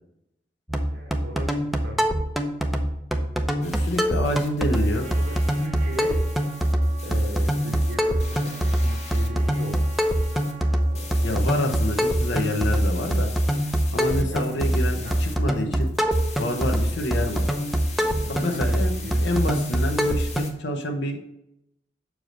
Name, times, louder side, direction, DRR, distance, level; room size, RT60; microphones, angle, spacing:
sound 1, 0.7-20.5, equal, ahead, 0.6 m, -24 dB
voice 1, 0.9-2.1 4.0-6.2 6.5-6.7 7.0-10.0 10.9-11.3 13.9-15.4 18.1-19.2, equal, 75° right, -3 dB, 1.3 m, -39 dB
voice 2, 3.6-5.1 11.2-13.3 13.9-15.9 16.4-17.4 18.0-18.9 19.2-21.3, left 1 dB, 65° left, 4 dB, 0.8 m, -28 dB
sound 2, 3.6-20.5, left 4 dB, 40° left, 1.1 m, -42 dB
Trumpet, 4.9-12.5, right 6 dB, 45° right, 1.0 m, -45 dB
6.5 x 4.7 x 5.1 m, 0.83 s
head